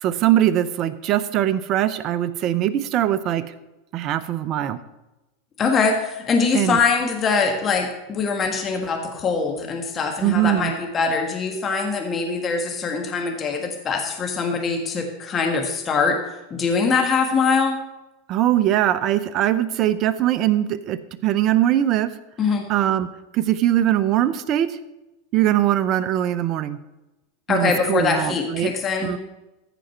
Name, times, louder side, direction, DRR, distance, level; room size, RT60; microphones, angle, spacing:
voice 1, 0.0-3.4 3.9-4.8 6.5-6.8 10.2-10.7 18.3-22.1 22.7-24.8 25.3-26.8 27.5-28.7 29.0-29.2, right 12 dB, 45° right, 13 dB, 0.7 m, -21 dB
voice 2, 5.6-16.2 16.5-17.7 22.4-22.7 27.5-29.1, left 5 dB, 30° left, 2 dB, 1.6 m, -23 dB
14.5 x 5.0 x 4.4 m, 1.0 s
hypercardioid pair, 100°, 0 cm